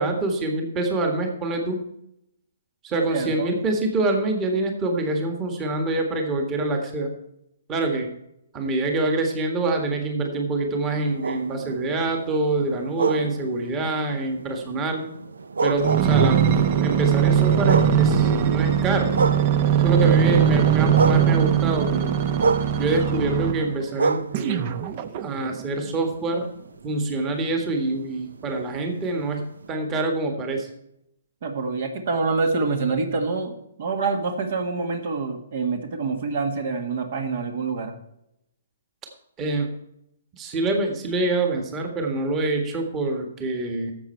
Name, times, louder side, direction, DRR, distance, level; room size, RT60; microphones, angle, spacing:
voice 1, 0.0-1.8 2.8-7.1 7.7-8.1 8.5-15.1 15.6-16.4 16.8-19.2 19.8-22.1 22.8-24.8 25.2-26.4 26.8-29.4 29.7-30.7 39.4-39.7 40.4-43.9, right 2 dB, 20° right, 3 dB, 1.7 m, -25 dB
voice 2, 3.1-3.5 23.1-23.3 31.4-37.9, right 4 dB, 55° right, 6 dB, 1.7 m, -26 dB
sound 1, 10.8-20.1 20.4-25.6 26.1-29.7, right 4 dB, 90° right, 0.5 m, -30 dB
sound 2, 15.8-23.7 24.3-25.6 26.2-26.3, right 8 dB, 40° right, 0.8 m, -20 dB
12.0 x 7.6 x 4.5 m, 0.79 s
hypercardioid pair, 150°, 0 cm